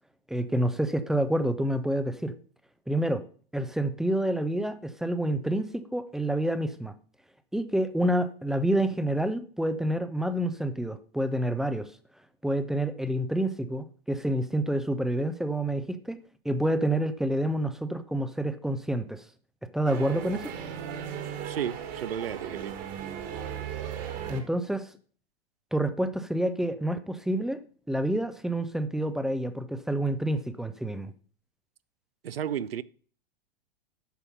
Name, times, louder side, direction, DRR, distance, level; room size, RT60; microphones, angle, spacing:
voice 1, 0.3-2.3 2.9-3.2 3.5-6.9 7.5-11.9 12.4-16.2 16.4-19.2 19.7-20.5 24.3-24.9 25.7-27.6 27.9-31.1, right 1 dB, ahead, 0.3 m, -28 dB
sound 1, 19.9-24.4, right 9 dB, 45° right, 1.7 m, -36 dB
voice 2, 21.4-22.8 32.2-32.8, right 9 dB, 75° right, 0.5 m, -33 dB
8.4 x 5.5 x 5.4 m
figure-of-eight pair, 100°, 30 cm